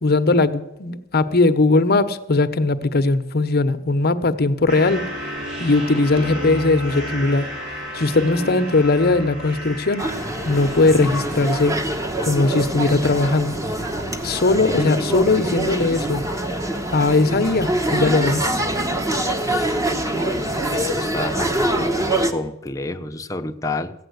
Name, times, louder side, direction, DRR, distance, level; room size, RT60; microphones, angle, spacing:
voice 1, 0.0-5.0 5.6-7.5 7.9-10.1 10.4-11.7 12.2-13.6 14.2-16.2 16.9-18.4, left 3 dB, 50° left, 9 dB, 0.9 m, -19 dB
sound 1, 4.7-11.7, equal, 60° right, 3.6 m, -31 dB
sound 2, 10.0-22.3, right 1 dB, 15° right, 1.1 m, -24 dB
voice 2, 20.1-21.6 22.3-23.9, left 2 dB, 15° left, 6 dB, 0.8 m, -29 dB
15.5 x 9.0 x 8.0 m, 0.95 s
head